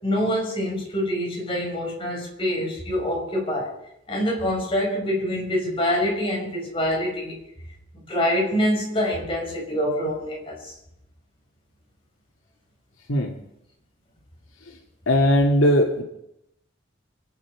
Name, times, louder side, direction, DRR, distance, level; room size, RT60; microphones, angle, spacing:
voice 1, 0.0-3.7 4.1-7.4 8.1-10.7, equal, 25° left, -2 dB, 5.7 m, -25 dB
voice 2, 15.1-16.0, equal, 85° left, 1 dB, 2.6 m, -19 dB
29.0 x 9.9 x 4.9 m, 0.80 s
head